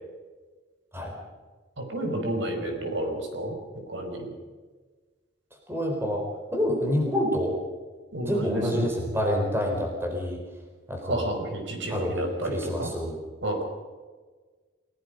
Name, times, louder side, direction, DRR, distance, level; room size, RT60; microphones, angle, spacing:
voice 1, 1.8-3.5 3.9-4.3 8.1-8.9 11.0-12.9 13.4-13.6, right 1 dB, 75° right, 3 dB, 5.0 m, -30 dB
voice 2, 5.7-6.2 6.5-7.6 8.2-10.4 10.9-11.2 11.9-13.2, equal, 10° right, 1 dB, 4.3 m, -27 dB
28.5 x 18.0 x 5.3 m, 1.4 s
head